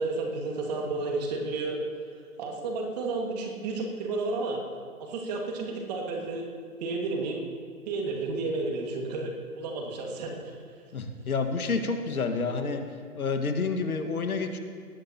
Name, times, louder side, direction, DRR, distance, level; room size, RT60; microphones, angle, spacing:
voice 1, 0.0-1.8 2.4-4.6 5.0-6.5 6.8-7.4 7.9-10.3, right 3 dB, 25° right, 1 dB, 2.0 m, -31 dB
voice 2, 10.9-12.8 13.1-14.6, left 4 dB, 70° left, 6 dB, 1.8 m, -29 dB
19.0 x 14.5 x 2.9 m, 2.2 s
hypercardioid pair, 150°, 45 cm